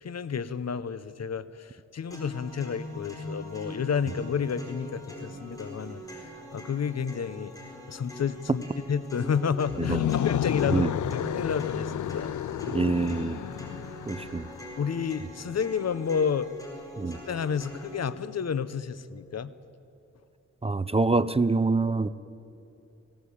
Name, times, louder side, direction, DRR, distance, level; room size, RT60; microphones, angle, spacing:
voice 1, 0.0-6.2 6.5-7.5 7.9-12.3 14.8-16.5 17.3-19.5, left 6 dB, 60° left, 16 dB, 0.8 m, -30 dB
sound 1, 2.1-18.1, equal, 10° left, 4.7 m, -42 dB
sound 2, 9.7-14.7, left 11 dB, 85° left, 0.4 m, -31 dB
voice 2, 12.7-13.4 14.1-14.5 17.0-17.2 20.6-22.1, right 3 dB, 20° right, 15 dB, 0.6 m, -25 dB
19.5 x 17.5 x 8.6 m, 2.7 s
wide cardioid pair, 80°, 29 cm